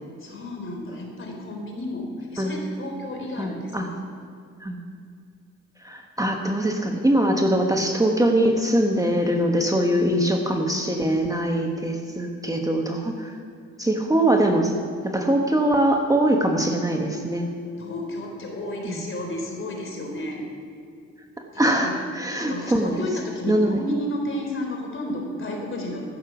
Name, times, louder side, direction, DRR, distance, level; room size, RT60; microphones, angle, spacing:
voice 1, 0.2-4.0 16.3-16.5 17.8-20.5 21.5-22.0 22.4-26.0, left 1 dB, 40° left, 1 dB, 3.5 m, -32 dB
voice 2, 3.4-3.9 4.6-4.8 5.8-13.4 13.8-14.7 15.0-17.5 18.8-19.0 21.6-22.9 23.5-23.8, right 1 dB, 10° right, 2 dB, 1.1 m, -22 dB
14.5 x 6.7 x 7.0 m, 2.3 s
cardioid pair, 90°, 30 cm